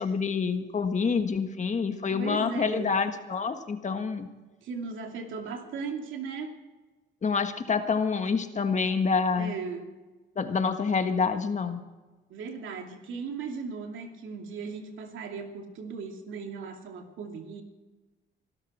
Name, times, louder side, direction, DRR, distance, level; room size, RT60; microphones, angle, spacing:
voice 1, 0.0-4.3 7.2-9.5 10.3-11.8, left 5 dB, 35° left, 7 dB, 1.6 m, -27 dB
voice 2, 2.1-2.9 4.6-6.6 9.3-9.9 12.3-17.6, right 5 dB, 75° right, 3 dB, 2.7 m, -37 dB
24.5 x 12.5 x 4.4 m, 1.2 s
cardioid pair, 90°, 20 cm